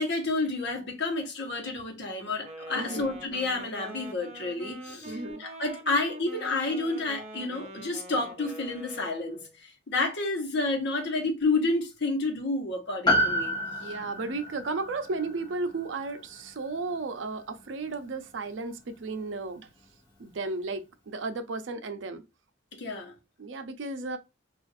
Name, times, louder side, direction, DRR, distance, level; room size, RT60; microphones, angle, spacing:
voice 1, 0.0-13.5 22.8-23.1, left 3 dB, 65° left, 1.0 m, -30 dB
Wind instrument woodwind instrument, 2.4-9.5, right 1 dB, 35° right, 0.6 m, -44 dB
voice 2, 2.7-3.1 5.1-5.4 13.8-19.7 20.2-22.2 23.4-24.2, right 3 dB, 75° right, 0.5 m, -34 dB
Piano, 13.1-17.7 17.9-18.0, left 1 dB, 25° left, 1.0 m, -30 dB
2.5 x 2.4 x 4.0 m
head